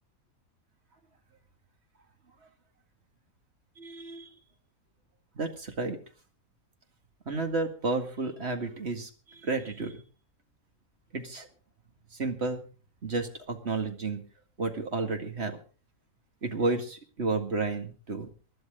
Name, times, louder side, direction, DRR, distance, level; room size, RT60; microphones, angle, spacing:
voice 1, 3.8-4.3 5.4-6.0 7.3-10.0 11.1-11.5 12.1-12.6 13.0-14.2 14.6-15.6 16.4-18.3, right 3 dB, 45° right, 5 dB, 2.2 m, -31 dB
24.0 x 11.5 x 3.8 m, 0.37 s
omnidirectional pair, 1.6 m